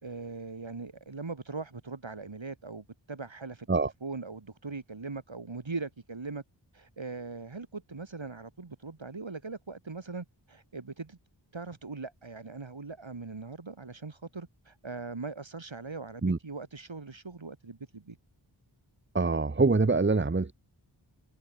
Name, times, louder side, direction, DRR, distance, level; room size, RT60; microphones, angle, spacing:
voice 1, 0.0-6.4 6.7-11.2 11.5-18.2, right 4 dB, 70° right, 3.4 m, -40 dB
voice 2, 19.1-20.5, right 3 dB, 25° right, 0.9 m, -24 dB
wide cardioid pair, 55°, 47 cm